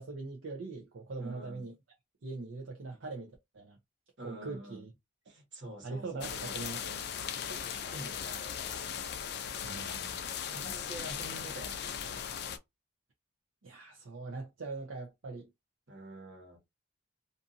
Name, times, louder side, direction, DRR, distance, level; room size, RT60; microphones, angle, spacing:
voice 1, 0.0-1.7 2.2-3.8 4.2-4.9 5.8-7.0 7.4-7.5 9.6-10.2 13.6-15.5, right 3 dB, 75° right, 0.6 m, -42 dB
voice 2, 1.2-1.7 4.2-4.8 5.3-6.6 7.4-8.9 10.5-12.3 15.9-16.6, right 1 dB, 60° right, 1.2 m, -47 dB
sound 1, 6.2-12.6, left 8 dB, 55° left, 0.4 m, -38 dB
2.6 x 2.6 x 2.5 m
head